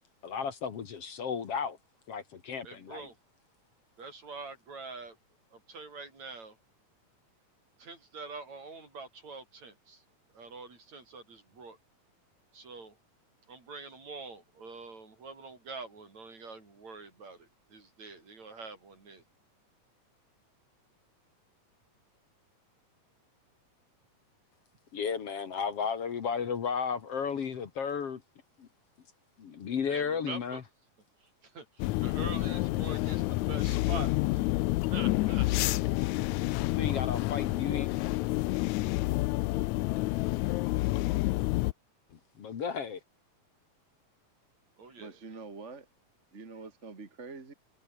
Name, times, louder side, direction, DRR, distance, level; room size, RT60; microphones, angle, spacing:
voice 1, 0.2-1.8 2.1-3.1 24.9-28.2 28.6-28.7 29.4-30.6 36.7-37.9 42.4-43.0, left 6 dB, 55° left, 2.6 m, -33 dB
voice 2, 2.6-3.1 4.0-5.2 5.5-6.6 7.8-10.0 10.3-11.8 12.5-13.0 13.5-19.2 29.9-30.6 31.4-34.4 34.9-36.4 44.8-45.2, right 4 dB, 65° right, 7.2 m, -45 dB
sound 1, 31.8-41.7, left 19 dB, 80° left, 1.9 m, -29 dB
voice 3, 37.0-37.6 45.0-45.9 46.3-47.5, right 4 dB, 25° right, 2.1 m, -46 dB
omnidirectional pair, 3.4 m